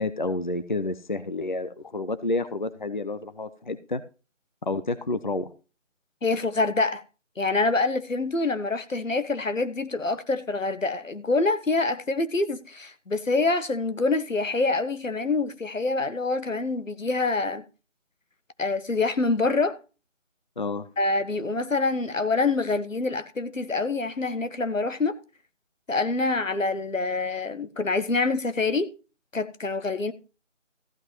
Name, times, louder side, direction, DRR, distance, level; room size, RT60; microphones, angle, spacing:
voice 1, 0.0-4.0 4.7-5.5 20.6-20.9, left 2 dB, 40° left, 0.7 m, -29 dB
voice 2, 6.2-7.0 7.4-17.6 18.6-19.8 21.0-25.2 25.9-28.9 29.3-30.1, left 3 dB, 90° left, 1.5 m, -26 dB
15.0 x 5.4 x 5.6 m
figure-of-eight pair, 170°, 38 cm